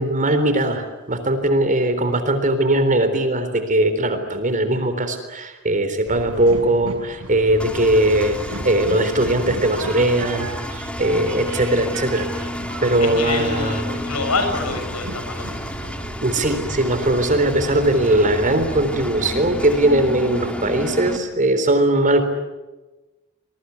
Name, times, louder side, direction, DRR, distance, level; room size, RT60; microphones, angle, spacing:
voice 1, 0.0-12.3 12.5-14.0 16.2-22.2, right 1 dB, 35° right, 9 dB, 3.8 m, -20 dB
Train, 6.1-19.9, right 1 dB, 70° right, 6.4 m, -36 dB
Engine, 7.6-21.2, left 1 dB, 5° left, 2.2 m, -31 dB
voice 2, 13.0-15.9, left 3 dB, 85° left, 6 dB, 6.7 m, -27 dB
26.5 x 22.0 x 9.6 m, 1.1 s
head